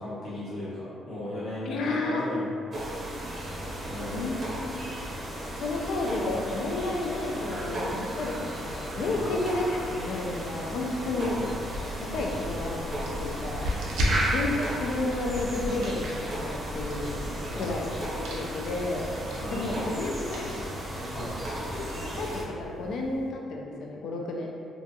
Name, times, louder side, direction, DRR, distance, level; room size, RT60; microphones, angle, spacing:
voice 1, 0.0-2.6 3.8-4.3 9.2-9.4 11.0-11.5 14.0-14.8 17.5-17.8 19.4-19.9 21.1-21.3, left 1 dB, 55° left, -11 dB, 1.1 m, -37 dB
voice 2, 1.7-2.3 4.1-4.7 5.6-11.4 12.1-13.7 14.3-19.1 19.5-20.6 21.7-22.3 22.6-24.5, left 2 dB, 75° left, 0 dB, 0.4 m, -31 dB
sound 1, 2.7-22.4, right 1 dB, 40° right, 0.6 m, -35 dB
sound 2, 11.1-23.3, equal, 85° right, 0.4 m, -36 dB
2.6 x 2.5 x 2.3 m, 2.3 s
cardioid pair, 90°, 0 cm